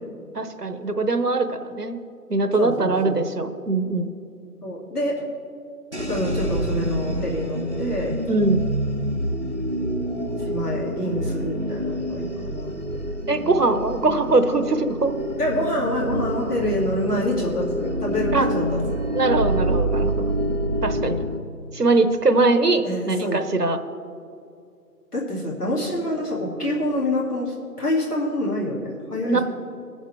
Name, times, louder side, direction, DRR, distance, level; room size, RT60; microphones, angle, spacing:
voice 1, 0.3-2.0 2.3-4.1 8.3-8.6 13.3-15.1 18.3-18.5 19.1-20.1 20.8-21.2 21.7-23.8 29.2-29.4, right 3 dB, 70° right, 9 dB, 1.0 m, -21 dB
voice 2, 2.6-3.2 4.6-5.2 6.1-8.2 10.5-12.7 15.4-19.0 22.8-23.4 25.1-29.4, left 1 dB, 70° left, -4 dB, 2.7 m, -26 dB
sound 1, 5.9-21.4, equal, 45° right, 0.6 m, -27 dB
20.5 x 7.3 x 3.5 m, 2.4 s
figure-of-eight pair, 175°, 49 cm